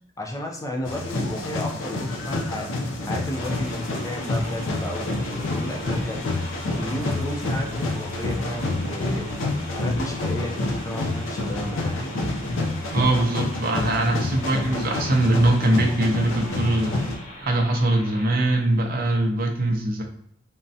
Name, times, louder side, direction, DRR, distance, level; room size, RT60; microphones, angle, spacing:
voice 1, 0.2-2.7 3.0-9.3 9.8-12.1 17.5-17.6, left 1 dB, 15° left, 1 dB, 0.4 m, -33 dB
sound 1, 0.8-17.2, left 2 dB, 85° left, 0.5 m, -28 dB
sound 2, 3.3-18.6, left 1 dB, 45° left, 0.8 m, -41 dB
voice 2, 12.9-17.0 17.4-20.0, right 1 dB, 50° right, 2 dB, 0.6 m, -22 dB
3.6 x 2.1 x 2.7 m, 0.68 s
head